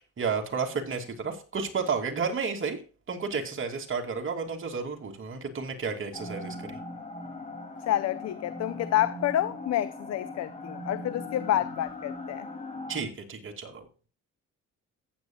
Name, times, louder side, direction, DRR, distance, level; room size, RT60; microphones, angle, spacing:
voice 1, 0.2-2.8 3.1-6.8 12.9-14.1, right 5 dB, 45° right, 2.5 m, -32 dB
sound 1, 6.1-13.0, left 2 dB, 25° left, 2.7 m, -39 dB
voice 2, 7.9-12.5, left 12 dB, 60° left, 0.6 m, -28 dB
14.5 x 9.0 x 2.3 m
cardioid pair, 90°, 30 cm